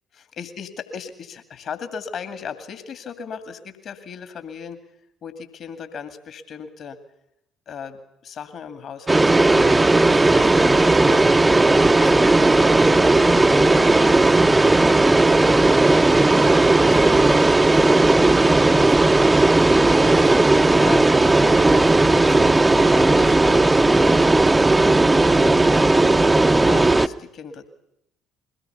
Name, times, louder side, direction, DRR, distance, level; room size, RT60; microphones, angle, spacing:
voice 1, 0.4-4.8 5.2-7.0 7.7-11.4 11.9-12.5 12.8-19.2 20.0-20.3 20.6-24.3 25.3-27.7, left 6 dB, 45° left, 9 dB, 2.2 m, -37 dB
sound 1, 9.1-27.1, right 2 dB, 15° right, 0.8 m, -16 dB
22.5 x 18.0 x 6.9 m, 0.79 s
figure-of-eight pair, 50°, 0 cm